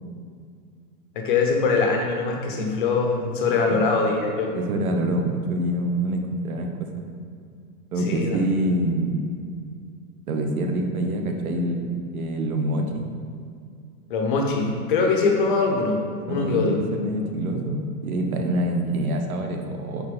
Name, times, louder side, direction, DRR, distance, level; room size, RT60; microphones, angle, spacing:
voice 1, 1.1-4.5 8.0-8.4 14.1-16.0 16.3-16.7, left 4 dB, 35° left, 1 dB, 1.0 m, -22 dB
voice 2, 4.5-6.7 7.0-7.1 7.9-9.2 10.3-13.1 16.3-20.1, right 1 dB, 65° right, 4 dB, 1.2 m, -26 dB
8.5 x 4.4 x 5.9 m, 2.3 s
supercardioid pair, 180°, 47 cm